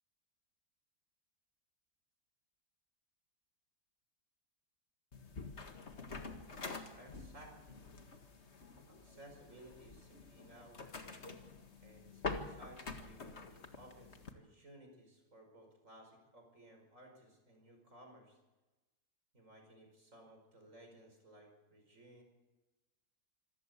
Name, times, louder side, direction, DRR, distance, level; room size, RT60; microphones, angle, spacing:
sound 1, 5.1-14.3, left 3 dB, 45° left, 2.0 m, -47 dB
voice 1, 6.9-7.8 8.9-10.8 11.8-18.4 19.3-22.2, right 1 dB, 50° right, 3 dB, 5.7 m, -59 dB
26.5 x 14.5 x 8.4 m, 1.1 s
omnidirectional pair, 1.7 m